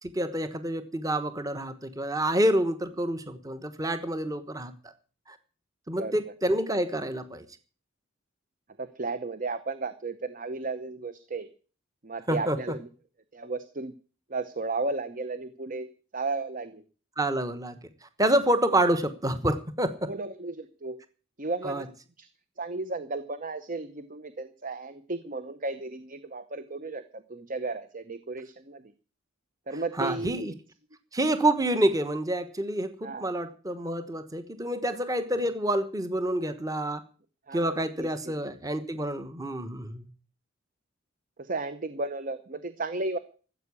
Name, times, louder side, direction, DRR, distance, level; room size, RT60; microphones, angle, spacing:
voice 1, 0.0-4.7 5.9-7.4 12.3-12.7 17.2-17.8 18.2-20.1 21.6-21.9 30.0-30.5 31.1-37.0 37.5-40.1, right 1 dB, 15° right, 11 dB, 1.1 m, -28 dB
voice 2, 8.8-11.5 12.0-12.9 13.3-13.9 14.3-15.9 16.1-16.8 20.1-21.0 21.4-21.8 22.2-22.3 22.6-28.8 29.7-30.5 33.0-33.3 37.5-38.3 41.4-43.2, right 3 dB, 40° right, 12 dB, 0.9 m, -34 dB
14.5 x 8.3 x 8.5 m, 0.39 s
head